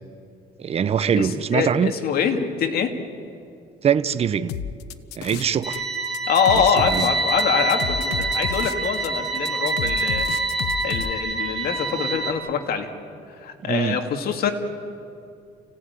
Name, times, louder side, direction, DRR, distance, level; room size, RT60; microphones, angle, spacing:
voice 1, 0.6-1.9 3.8-4.5 5.2-5.8 6.9-7.1 13.6-14.0, right 8 dB, 35° right, 0.8 m, -22 dB
voice 2, 1.2-2.9 6.3-10.3 10.8-12.9 13.3-14.5, left 6 dB, 65° left, 2.6 m, -24 dB
sound 1, 4.5-5.8 6.0-11.1, left 9 dB, 90° left, 1.0 m, -31 dB
sound 2, 5.6-12.3, right 3 dB, ahead, 4.0 m, -26 dB
29.5 x 17.0 x 9.8 m
cardioid pair, 110°, 17 cm